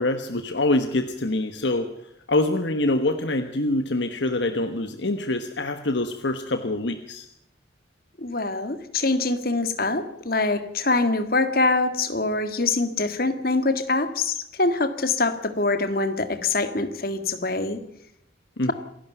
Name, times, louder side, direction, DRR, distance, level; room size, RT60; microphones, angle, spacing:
voice 1, 0.0-1.9 2.3-7.3 18.6-18.7, left 2 dB, 70° left, 8 dB, 1.3 m, -25 dB
voice 2, 8.2-17.8, left 3 dB, 50° left, 9 dB, 2.0 m, -24 dB
27.0 x 12.0 x 9.2 m, 0.75 s
head